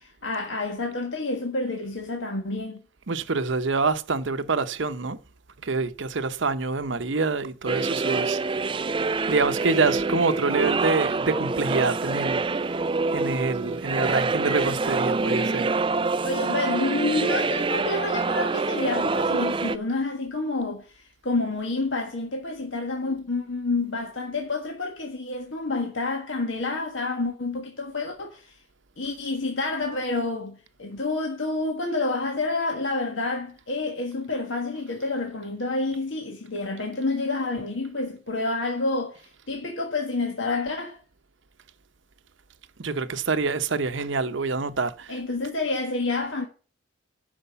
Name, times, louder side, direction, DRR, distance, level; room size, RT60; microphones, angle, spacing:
voice 1, 0.0-2.8 16.2-28.5 29.0-41.0 45.1-46.4, left 3 dB, 65° left, 1.5 m, -29 dB
voice 2, 3.1-5.2 5.6-8.7 9.3-12.8 13.1-15.7 42.8-45.2, right 4 dB, 65° right, 0.8 m, -26 dB
sound 1, 7.7-19.8, right 3 dB, 25° right, 0.4 m, -26 dB
11.0 x 5.0 x 6.9 m
head